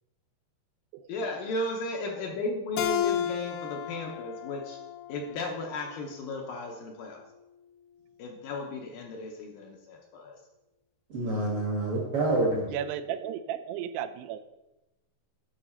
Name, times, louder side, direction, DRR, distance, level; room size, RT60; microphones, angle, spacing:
voice 1, 1.1-4.8 5.1-7.2 8.2-10.4, left 2 dB, 75° left, 1 dB, 2.2 m, -35 dB
Keyboard (musical), 2.8-6.0, left 10 dB, 90° left, 2.0 m, -33 dB
voice 2, 11.1-12.7, right 2 dB, 55° right, -3 dB, 1.5 m, -27 dB
voice 3, 12.7-14.4, right 10 dB, 85° right, 10 dB, 2.6 m, -34 dB
12.0 x 5.6 x 4.3 m, 0.99 s
omnidirectional pair, 4.7 m